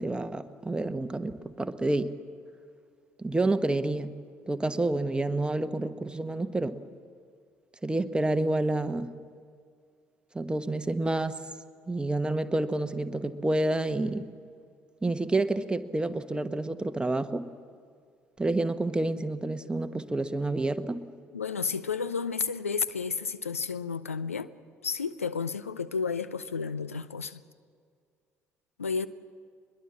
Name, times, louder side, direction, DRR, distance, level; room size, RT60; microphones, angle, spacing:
voice 1, 0.0-2.1 3.2-4.2 4.5-6.8 7.8-9.1 10.3-11.4 11.9-14.2 15.0-17.5 18.4-21.0, right 2 dB, 10° right, 1.2 m, -29 dB
voice 2, 21.3-24.5 24.8-27.4 28.8-29.1, left 5 dB, 85° left, 0.5 m, -31 dB
23.0 x 22.0 x 7.3 m
figure-of-eight pair, 55°, 7 cm